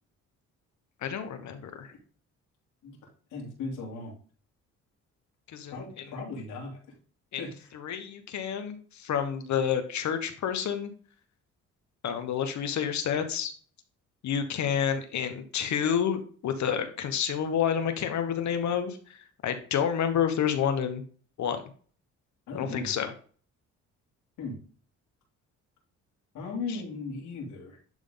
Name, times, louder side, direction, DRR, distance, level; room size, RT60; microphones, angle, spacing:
voice 1, 1.0-1.9 5.5-5.7 7.3-7.4 7.8-10.9 12.0-13.5 14.2-21.0 21.4-21.6 22.5-23.1, left 8 dB, 65° left, 8 dB, 1.2 m, -29 dB
voice 2, 3.3-4.1 5.7-6.8 7.4-7.7 22.5-22.9 24.4-24.6 26.3-27.8, left 3 dB, 85° left, -2 dB, 3.0 m, -37 dB
10.5 x 3.6 x 3.9 m, 0.42 s
cardioid pair, 90°, 30 cm